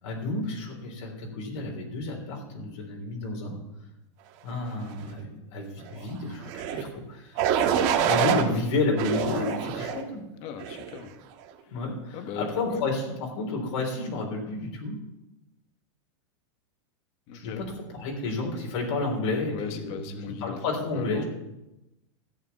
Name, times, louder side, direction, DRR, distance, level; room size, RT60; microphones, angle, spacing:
voice 1, 0.0-3.6 4.4-7.5 8.0-10.2 11.7-15.0 17.3-21.2, left 3 dB, 70° left, 0 dB, 3.5 m, -31 dB
sound 1, 6.4-6.8 7.4-8.4 9.0-10.0 10.6-11.0, right 8 dB, 45° right, 1.4 m, -25 dB
voice 2, 10.4-11.1 12.1-12.8 17.3-17.7 19.5-20.6 20.9-21.2, left 7 dB, 40° left, 7 dB, 1.2 m, -38 dB
14.0 x 5.0 x 9.2 m, 0.93 s
supercardioid pair, 150°, 16 cm